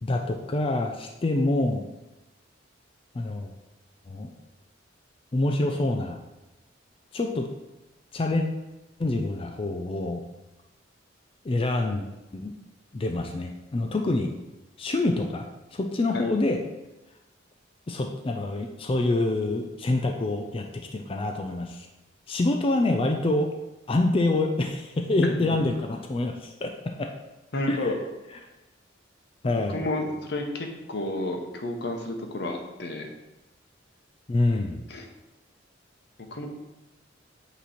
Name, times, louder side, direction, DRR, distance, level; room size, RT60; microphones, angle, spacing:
voice 1, 0.0-1.9 3.1-3.5 4.1-4.3 5.3-6.2 7.1-7.5 8.1-8.5 9.0-10.2 11.4-12.0 12.3-12.5 12.9-14.3 14.8-15.4 15.7-16.6 17.9-20.7 20.9-21.9 22.3-23.5 23.9-26.7 27.0-27.1 27.7-27.8 29.4-29.8 34.3-34.8, left 2 dB, 30° left, 3 dB, 0.4 m, -26 dB
voice 2, 25.2-25.6 27.5-28.0 29.4-33.1 34.9-35.1 36.3-36.5, left 2 dB, 60° left, 3 dB, 0.9 m, -31 dB
8.1 x 3.0 x 4.2 m, 1.0 s
head